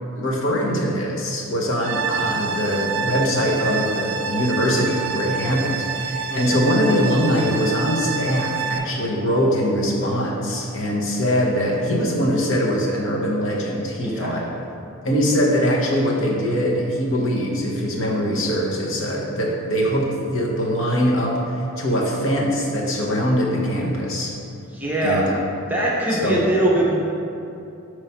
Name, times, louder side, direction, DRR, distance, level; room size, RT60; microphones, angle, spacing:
voice 1, 0.2-14.4 15.0-24.3 25.0-25.4 26.1-26.4, equal, 60° left, -3 dB, 0.9 m, -22 dB
sound 1, 1.8-8.8, right 6 dB, 55° right, 0.3 m, -28 dB
voice 2, 24.7-25.3 25.7-27.0, right 1 dB, 10° right, -6 dB, 0.6 m, -21 dB
5.3 x 3.2 x 5.6 m, 2.7 s
head